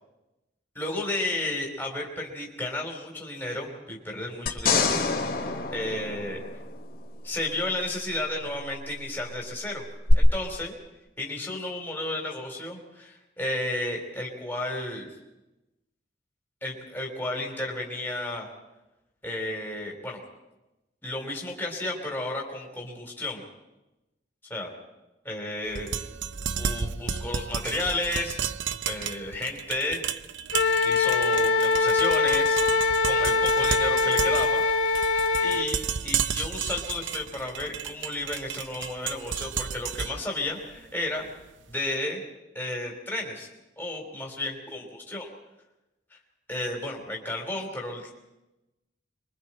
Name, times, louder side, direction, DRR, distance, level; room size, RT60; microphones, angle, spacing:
voice 1, 0.8-5.0 5.7-6.4 7.2-9.8 10.1-10.8 11.2-15.1 16.6-18.5 19.2-20.2 21.0-23.4 24.5-24.7 25.2-25.9 26.5-28.4 28.9-30.0 30.8-32.6 33.0-34.6 35.4-41.3 41.7-42.2 42.5-43.5 43.8-45.3 46.1-46.2 46.5-48.1, left 2 dB, 10° left, -1 dB, 3.6 m, -32 dB
sound 1, 4.5-7.0 10.1-10.2, left 4 dB, 50° left, 2.2 m, -26 dB
sound 2, 25.7-41.7, right 7 dB, 75° right, 0.6 m, -33 dB
Wind instrument woodwind instrument, 30.5-35.7, left 4 dB, 85° left, 1.5 m, -23 dB
26.0 x 23.5 x 4.4 m, 0.99 s
head